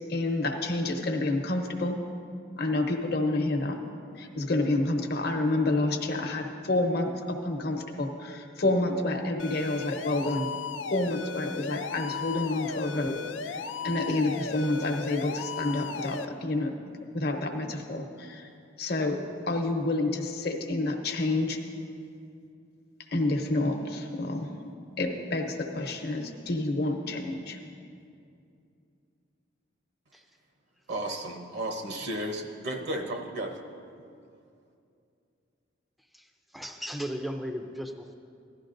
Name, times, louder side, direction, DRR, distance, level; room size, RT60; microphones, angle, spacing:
voice 1, 0.1-1.9 2.6-3.8 4.2-10.5 10.9-13.2 13.4-16.7 17.1-18.5 18.8-19.2 19.5-21.6 23.1-24.5 25.0-27.6, left 2 dB, 55° left, 3 dB, 0.9 m, -29 dB
sound 1, 9.4-16.3, left 6 dB, 80° left, 0.4 m, -36 dB
voice 2, 30.9-33.6, right 1 dB, 60° right, 3 dB, 0.8 m, -33 dB
voice 3, 36.5-38.2, equal, ahead, 5 dB, 0.4 m, -36 dB
16.0 x 11.5 x 2.6 m, 2.5 s
head